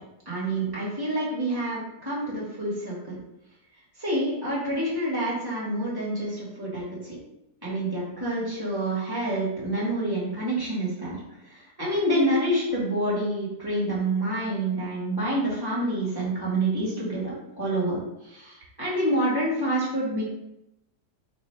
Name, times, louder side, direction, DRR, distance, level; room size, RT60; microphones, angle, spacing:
voice 1, 0.2-3.2 4.0-7.2 7.6-11.2 11.5-20.2, right 1 dB, 15° right, -6 dB, 1.2 m, -27 dB
4.4 x 2.2 x 4.4 m, 0.87 s
omnidirectional pair, 1.8 m